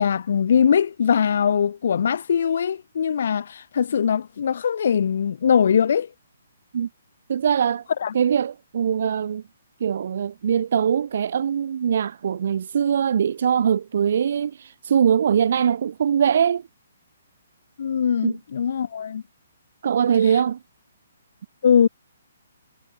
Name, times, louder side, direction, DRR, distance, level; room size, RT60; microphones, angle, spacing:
voice 1, 0.0-6.1 8.0-8.1 17.8-19.2 20.2-20.4 21.6-21.9, left 7 dB, 55° left, 0.5 m, -21 dB
voice 2, 7.3-7.8 8.1-9.4 9.8-16.6 18.2-18.4 19.8-20.6, right 8 dB, 50° right, 0.9 m, -22 dB
hypercardioid pair, 170°, 0 cm